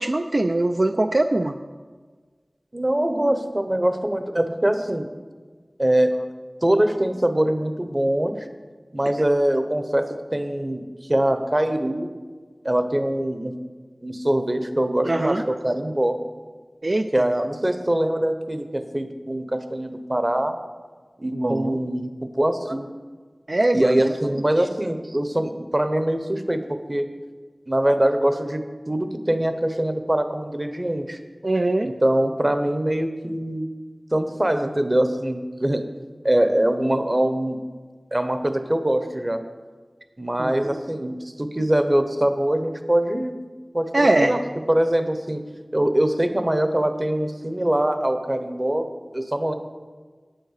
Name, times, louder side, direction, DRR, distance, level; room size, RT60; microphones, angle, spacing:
voice 1, 0.0-1.5 15.1-15.4 16.8-17.1 21.3-21.8 23.5-24.1 31.4-32.0 40.4-40.5 41.1-41.2 43.9-44.4, right 2 dB, 60° right, 5 dB, 0.4 m, -22 dB
voice 2, 2.7-5.1 5.8-6.1 6.6-8.5 8.9-12.1 12.6-13.5 14.0-16.2 17.1-20.6 21.2-22.1 22.4-22.9 23.7-27.1 27.7-28.6 28.9-31.2 31.8-33.7 34.1-35.8 36.2-37.6 38.1-39.4 40.2-43.3 43.7-44.4 44.7-45.4 45.7-48.9 49.1-49.5, right 1 dB, 35° right, 8 dB, 0.9 m, -23 dB
9.0 x 7.7 x 6.5 m, 1.5 s
wide cardioid pair, 45°, 0 cm